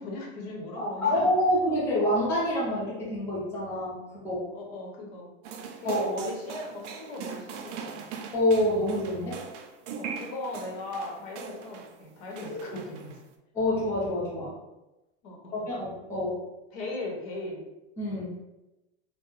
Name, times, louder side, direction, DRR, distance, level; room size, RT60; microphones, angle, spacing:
voice 1, 0.0-1.3 4.5-5.3 5.8-8.1 10.0-13.2 15.2-15.7 16.7-17.6, left 2 dB, 60° left, -1 dB, 0.9 m, -38 dB
voice 2, 0.8-4.5 5.8-6.3 8.3-9.4 12.5-12.8 13.5-14.5 15.5-16.4 18.0-18.3, left 1 dB, 5° left, -8 dB, 0.5 m, -27 dB
sound 1, 5.4-12.0 12.3-13.3, right 6 dB, 75° right, 0.5 m, -40 dB
2.3 x 2.1 x 3.1 m, 0.98 s
supercardioid pair, 140°, 36 cm